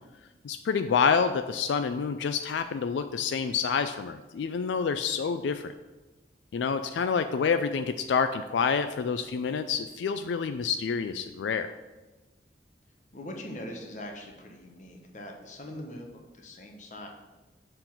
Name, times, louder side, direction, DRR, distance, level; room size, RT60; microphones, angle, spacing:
voice 1, 0.4-5.7 6.5-11.7, left 6 dB, 90° left, 9 dB, 0.3 m, -28 dB
voice 2, 13.1-17.1, left 1 dB, 45° left, 2 dB, 1.0 m, -42 dB
6.8 x 3.9 x 6.0 m, 1.2 s
head